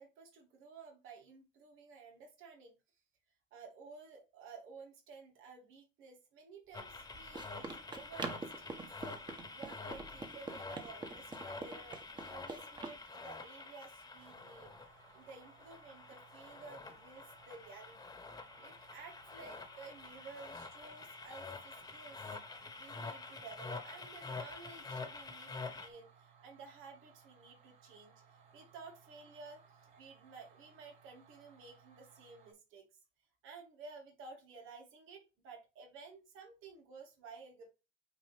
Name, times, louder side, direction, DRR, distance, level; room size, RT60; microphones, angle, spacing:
voice 1, 0.0-2.8 3.5-12.0 12.3-14.7 15.1-18.2 18.6-28.2 28.5-29.6 30.0-32.9 33.4-37.7, right 4 dB, 90° right, 2 dB, 2.9 m, -54 dB
sound 1, 6.7-25.9, left 3 dB, 20° left, 1.2 m, -48 dB
Run, 6.9-13.0, right 3 dB, 20° right, 1.3 m, -46 dB
sound 2, 14.1-32.5, right 6 dB, 70° right, 4.1 m, -64 dB
9.3 x 3.9 x 3.6 m, 0.28 s
cardioid pair, 150°, 20 cm